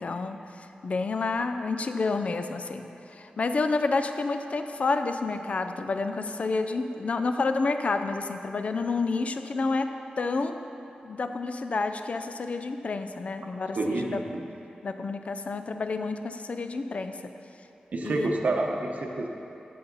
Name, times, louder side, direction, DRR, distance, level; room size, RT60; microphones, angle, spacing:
voice 1, 0.0-10.7 11.0-14.2 14.8-17.1 18.0-18.4, left 3 dB, 50° left, 8 dB, 0.4 m, -29 dB
voice 2, 13.8-14.4 17.9-19.3, right 2 dB, 60° right, 1 dB, 0.8 m, -28 dB
14.0 x 5.5 x 4.0 m, 2.9 s
wide cardioid pair, 135°, 3 cm